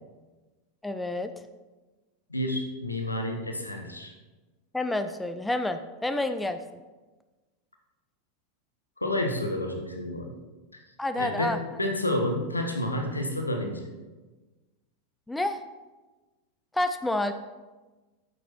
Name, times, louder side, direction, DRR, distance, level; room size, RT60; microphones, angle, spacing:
voice 1, 0.8-1.3 4.7-6.6 11.0-11.6 15.3-15.6 16.7-17.3, left 2 dB, 5° left, 9 dB, 0.5 m, -28 dB
voice 2, 2.3-4.1 9.0-10.3 11.1-13.9, left 1 dB, 85° left, 4 dB, 1.1 m, -30 dB
9.0 x 6.8 x 4.5 m, 1.2 s
figure-of-eight pair, 85°, 0 cm